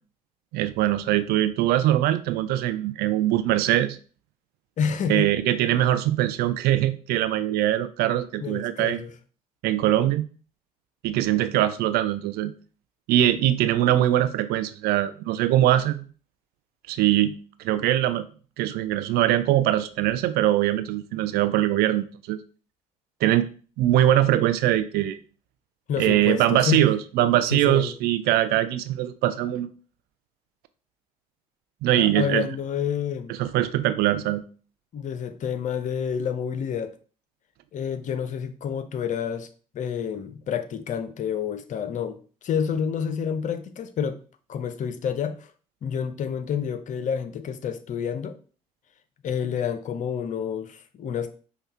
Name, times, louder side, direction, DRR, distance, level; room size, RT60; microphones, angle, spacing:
voice 1, 0.5-4.0 5.1-9.0 9.6-10.3 11.0-12.5 13.1-16.1 16.9-17.4 17.6-18.3 18.6-22.4 23.2-23.5 23.8-25.2 26.0-29.7 31.8-32.5 33.3-34.4, right 13 dB, 50° right, 0.4 m, -22 dB
voice 2, 4.8-5.3 8.4-9.1 25.9-26.9 27.5-27.9 32.0-33.4 34.9-36.9 37.7-39.5 39.7-42.2 42.4-44.2 44.5-45.5 45.8-48.4 49.2-51.3, left 7 dB, 40° left, 0.6 m, -28 dB
5.4 x 2.3 x 4.3 m
figure-of-eight pair, 50°, 20 cm